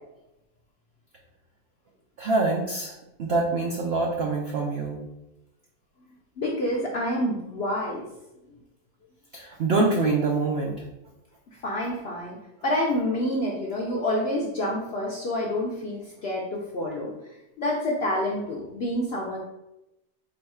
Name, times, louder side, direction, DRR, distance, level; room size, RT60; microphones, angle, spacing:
voice 1, 2.2-5.0 9.3-10.8, right 3 dB, 85° right, 0 dB, 0.5 m, -25 dB
voice 2, 6.4-8.0 11.5-12.4 12.6-17.1 17.6-19.4, left 1 dB, 65° left, -2 dB, 0.6 m, -28 dB
4.2 x 2.3 x 4.1 m, 0.93 s
omnidirectional pair, 1.7 m